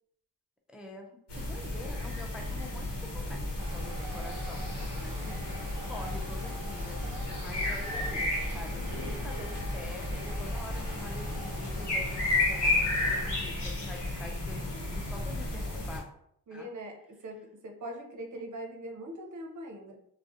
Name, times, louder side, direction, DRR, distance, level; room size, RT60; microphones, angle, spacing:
voice 1, 0.7-5.2 5.9-7.0 7.4-16.0 16.5-16.7, left 2 dB, ahead, 2 dB, 0.3 m, -46 dB
sound 1, 1.3-16.0, left 2 dB, 70° left, 1.0 m, -33 dB
sound 2, 3.6-13.4, right 2 dB, 20° right, 1.1 m, -46 dB
voice 2, 5.1-5.7 16.5-20.0, right 1 dB, 45° right, 2 dB, 0.7 m, -42 dB
sound 3, 8.6-10.1, left 2 dB, 40° left, 0.6 m, -46 dB
2.3 x 2.1 x 2.7 m, 0.70 s
cardioid pair, 50°, 43 cm